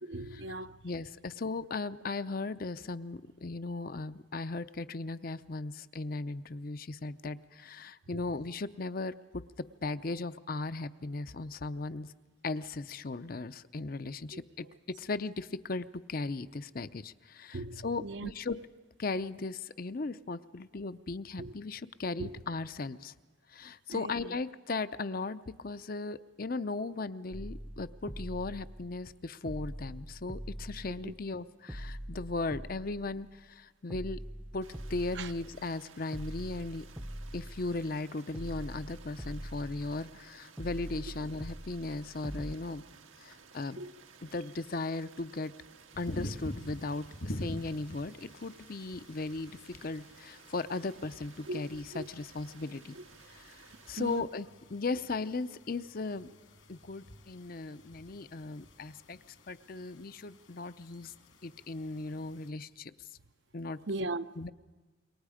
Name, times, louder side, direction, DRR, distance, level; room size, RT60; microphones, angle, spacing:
voice 1, 0.0-0.8 14.3-14.7 17.5-18.3 21.4-21.5 22.2-22.4 23.9-24.4 31.0-31.1 35.1-35.3 43.8-43.9 51.5-51.7 51.9-52.1 53.0-53.1 54.0-54.2 63.9-64.3, right 2 dB, 60° right, 0.8 m, -39 dB
voice 2, 0.8-12.1 12.4-14.7 15.0-18.6 19.0-23.1 23.5-34.2 34.5-36.9 37.3-42.8 43.2-43.8 44.2-45.5 46.0-53.0 53.3-53.6 53.9-56.3 56.7-59.2 59.5-61.1 61.4-62.9 63.5-63.8 64.4-64.5, left 3 dB, 45° left, 0.6 m, -37 dB
sound 1, 27.3-29.2 29.5-31.4 31.7-33.5 33.9-35.8 36.1-38.0 38.3-40.2 40.6-42.5, equal, 10° right, 0.6 m, -43 dB
sound 2, 34.6-54.2, right 6 dB, 85° right, 1.6 m, -57 dB
sound 3, 45.9-62.5, left 1 dB, 80° left, 3.0 m, -47 dB
27.5 x 23.0 x 5.0 m
head